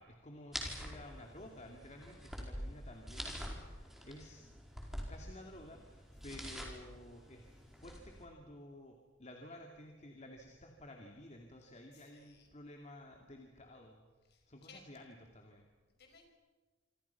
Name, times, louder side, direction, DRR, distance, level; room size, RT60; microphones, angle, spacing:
voice 1, 0.0-4.5 5.1-14.0 14.5-15.6, left 1 dB, 35° left, 2 dB, 2.6 m, -53 dB
sound 1, 0.5-8.2, equal, ahead, 4.8 m, -46 dB
voice 2, 11.7-12.5 14.3-14.8 16.0-16.3, left 4 dB, 55° left, 5 dB, 5.6 m, -61 dB
27.0 x 27.0 x 6.0 m, 1.3 s
head